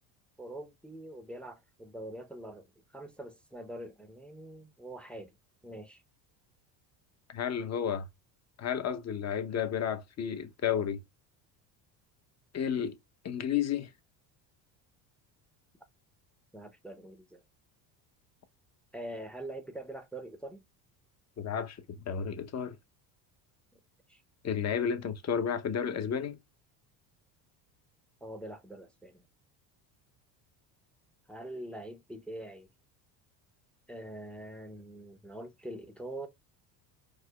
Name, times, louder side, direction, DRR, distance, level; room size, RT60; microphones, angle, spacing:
voice 1, 0.4-2.7 2.9-5.3 5.6-6.0 16.5-17.4 18.9-20.6 24.1-24.2 28.2-29.2 31.3-32.7 33.9-36.3, right 1 dB, ahead, 0.6 m, -44 dB
voice 2, 7.3-8.1 8.6-11.0 12.5-12.9 13.2-13.9 21.4-21.8 22.1-22.8 24.4-26.4, left 8 dB, 35° left, 0.8 m, -32 dB
4.8 x 2.1 x 2.3 m
supercardioid pair, 85°, 48 cm